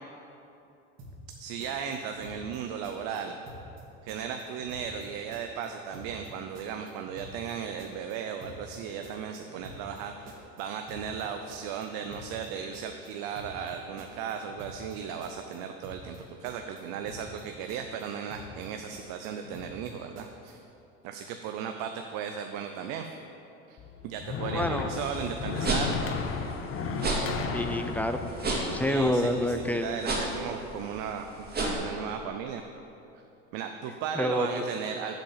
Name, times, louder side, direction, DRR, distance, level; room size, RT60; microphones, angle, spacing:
sound 1, 1.0-1.3 1.6-2.6 2.8-3.2 3.5-3.8 4.1-5.1 5.3-5.7 5.9-6.3 6.5-7.5 7.8-8.1 8.4-8.8 9.0-10.0 10.3-10.6 10.9-11.2 11.5-12.5 12.7-13.1 13.4-13.7 14.0-14.9 15.2-15.6 15.8-16.2 16.4-17.4 17.7-18.0 18.3-18.7 18.9-19.9 20.2-20.5, right 1 dB, 40° right, 2.2 m, -47 dB
voice 1, 1.4-3.3 4.0-20.6 21.0-23.1 23.7-23.8 24.0-26.0 28.8-32.6 33.5-35.2, right 7 dB, 60° right, 5 dB, 0.6 m, -36 dB
sound 2, 23.8-29.9, left 5 dB, 35° left, 0.8 m, -35 dB
voice 2, 24.5-24.9 27.5-29.8 34.1-34.6, left 1 dB, 5° left, 7 dB, 0.4 m, -28 dB
sound 3, 24.9-31.7, right 2 dB, 25° right, 2.1 m, -33 dB
7.4 x 5.3 x 7.2 m, 2.8 s
hypercardioid pair, 85°, 37 cm